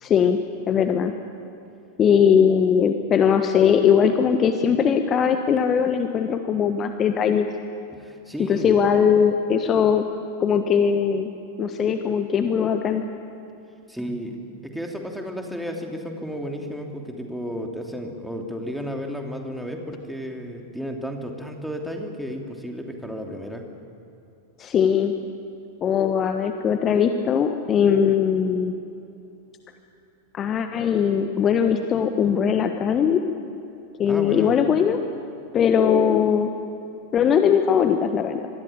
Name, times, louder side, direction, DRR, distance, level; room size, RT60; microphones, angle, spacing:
voice 1, 0.0-0.4 0.7-1.1 2.0-7.5 8.5-10.0 10.4-11.3 11.6-13.0 24.6-25.1 25.8-28.7 30.3-33.2 34.0-35.0 35.5-36.5 37.1-38.4, left 7 dB, 25° left, 7 dB, 1.3 m, -20 dB
voice 2, 7.9-8.7 13.9-23.6 34.0-34.5, equal, ahead, 2 dB, 3.0 m, -33 dB
26.0 x 21.5 x 8.9 m, 2.8 s
figure-of-eight pair, 90°, 0 cm